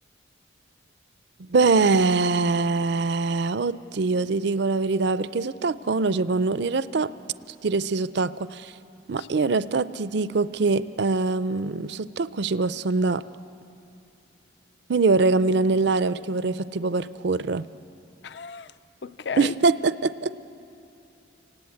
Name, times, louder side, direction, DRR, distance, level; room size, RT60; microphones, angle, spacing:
voice 1, 1.4-7.1 7.6-8.7 9.1-13.2 14.9-17.6 19.4-20.3, right 3 dB, 60° right, 0.5 m, -23 dB
voice 2, 9.2-9.5 18.2-18.7 19.0-19.5, left 5 dB, 60° left, 0.5 m, -34 dB
29.5 x 18.5 x 8.5 m
head